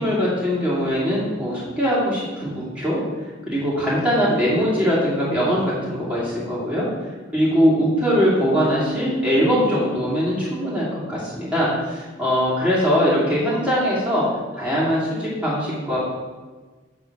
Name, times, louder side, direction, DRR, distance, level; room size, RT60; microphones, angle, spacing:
voice 1, 0.0-3.0 3.5-6.9 7.3-14.3 14.6-16.0, equal, 5° right, -8 dB, 2.4 m, -21 dB
9.1 x 3.8 x 5.9 m, 1.3 s
head